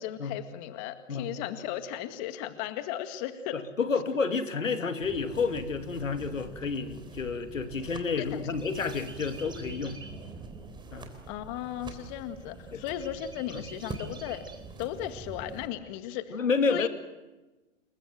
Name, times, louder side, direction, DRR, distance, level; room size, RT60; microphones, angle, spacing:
voice 1, 0.0-3.6 8.2-8.4 11.3-14.4 14.8-16.4 16.7-16.9, left 11 dB, 35° left, 9 dB, 2.0 m, -36 dB
voice 2, 3.5-10.0 10.9-11.1 12.7-12.8 13.5-13.6 16.3-16.9, left 5 dB, 85° left, 8 dB, 2.9 m, -30 dB
sound 1, 5.0-15.7, right 4 dB, 10° right, 3.5 m, -44 dB
28.5 x 22.5 x 7.6 m, 1.1 s
hypercardioid pair, 125°, 38 cm